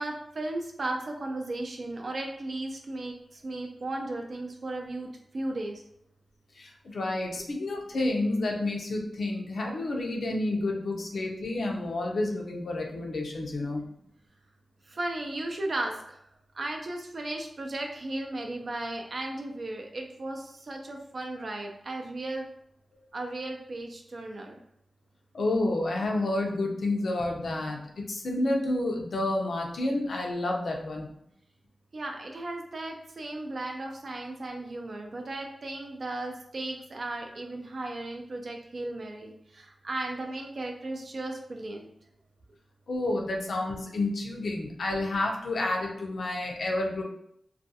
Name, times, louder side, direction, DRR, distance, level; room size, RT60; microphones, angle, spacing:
voice 1, 0.0-5.1 5.3-5.8 14.9-16.2 16.5-22.5 23.1-24.6 31.9-41.9, right 2 dB, 60° right, 2 dB, 0.4 m, -35 dB
voice 2, 6.6-13.9 20.9-21.0 25.3-31.1 42.9-47.0, left 2 dB, 80° left, 0 dB, 0.5 m, -30 dB
2.3 x 2.2 x 2.7 m, 0.73 s
wide cardioid pair, 80°, 0 cm